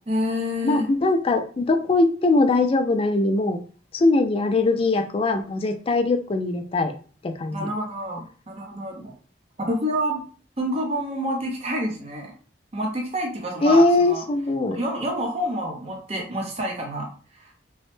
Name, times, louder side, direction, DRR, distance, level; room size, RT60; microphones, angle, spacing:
voice 1, 0.1-0.9 7.5-9.1 9.6-10.2 10.6-12.3 12.7-14.2 14.7-17.1 17.4-17.5, equal, 35° right, 0 dB, 0.6 m, -28 dB
voice 2, 0.6-3.6 3.9-6.9 7.2-7.7 13.6-14.8, left 2 dB, 30° left, 6 dB, 0.3 m, -21 dB
3.0 x 2.0 x 3.1 m, 0.40 s
head